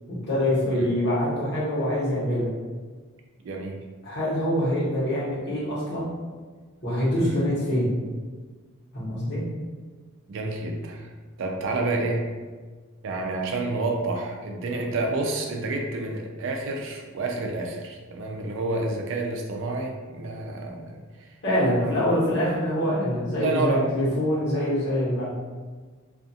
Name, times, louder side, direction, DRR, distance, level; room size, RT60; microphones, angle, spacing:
voice 1, 0.1-2.5 4.0-6.1 6.8-7.9 8.9-9.4 21.4-25.3, equal, 55° left, -8 dB, 1.1 m, -25 dB
voice 2, 3.4-3.8 7.2-7.5 10.3-11.1 11.4-12.3 13.0-21.3 21.8-21.9 23.3-23.9, right 2 dB, 65° right, 2 dB, 0.4 m, -29 dB
2.4 x 2.3 x 2.7 m, 1.4 s
head